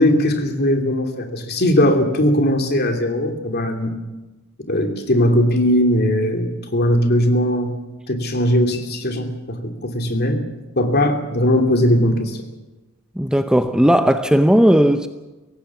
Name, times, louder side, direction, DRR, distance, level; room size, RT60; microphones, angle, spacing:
voice 1, 0.0-4.0 4.7-7.8 8.1-10.4 10.8-12.4, left 1 dB, 50° left, 2.7 m, -19 dB
voice 2, 13.2-15.1, equal, 5° right, 0.7 m, -15 dB
23.5 x 17.5 x 7.2 m
head